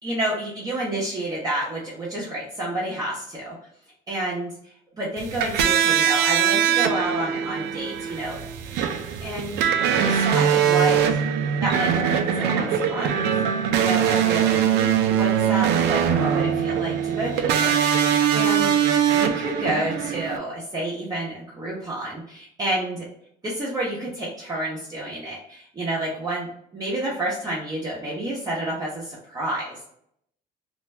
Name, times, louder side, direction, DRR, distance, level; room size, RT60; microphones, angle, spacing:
voice 1, 0.0-3.5 4.1-8.4 9.2-9.7 10.0-11.2 11.6-13.1 13.7-18.1 18.3-23.1 23.4-29.9, right 1 dB, 20° right, -6 dB, 0.8 m, -29 dB
sound 1, 5.2-20.4, right 8 dB, 80° right, 0.4 m, -22 dB
2.5 x 2.2 x 3.2 m, 0.69 s
cardioid pair, 110°, 17 cm